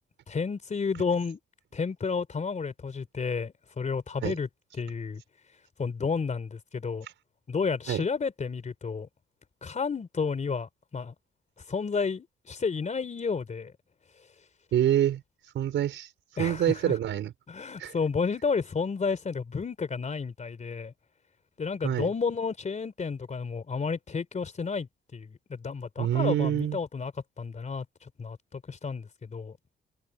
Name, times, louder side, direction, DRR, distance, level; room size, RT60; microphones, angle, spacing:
voice 1, 0.3-1.4 1.7-4.5 4.8-5.2 5.8-7.1 7.5-9.1 9.6-11.1 11.7-13.7 16.4-17.0 17.5-20.9 21.6-27.1 27.4-29.6, left 5 dB, 35° left, 3.9 m, -31 dB
voice 2, 14.7-16.1 16.4-17.3 17.8-17.9 21.8-22.1 26.0-26.8, right 11 dB, 75° right, 5.1 m, -26 dB
cardioid pair, 90°, 20 cm